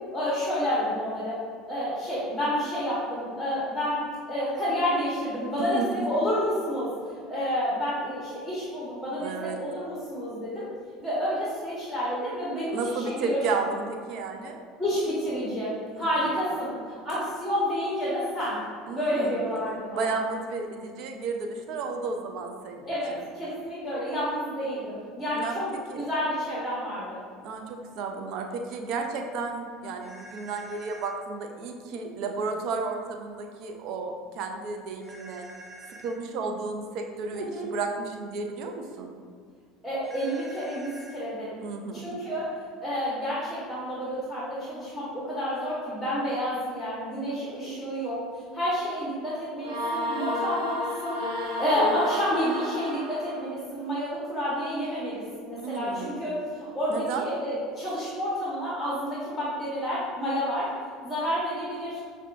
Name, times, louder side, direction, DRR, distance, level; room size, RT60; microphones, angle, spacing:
voice 1, 0.1-1.3 1.7-4.0 4.3-6.9 7.3-9.3 9.6-10.7 11.0-13.4 14.8-18.6 18.9-20.1 22.8-25.7 25.9-27.2 37.3-37.7 39.8-41.6 41.9-42.5 42.8-48.2 48.5-51.2 51.6-60.7 61.0-62.0, equal, 5° left, -8 dB, 1.2 m, -29 dB
voice 2, 9.2-9.6 12.7-14.6 15.9-16.0 18.9-19.4 19.9-23.2 25.3-26.0 27.4-35.4 36.0-39.1 41.6-42.1 55.6-56.2 56.9-57.2, right 4 dB, 60° right, 3 dB, 0.5 m, -33 dB
sound 1, 30.0-31.1 35.0-36.2 40.0-41.2, right 1 dB, 25° right, 0.8 m, -47 dB
sound 2, 49.6-53.4, left 1 dB, 75° right, 1.0 m, -31 dB
5.7 x 2.3 x 2.5 m, 2.1 s
hypercardioid pair, 75°, 0 cm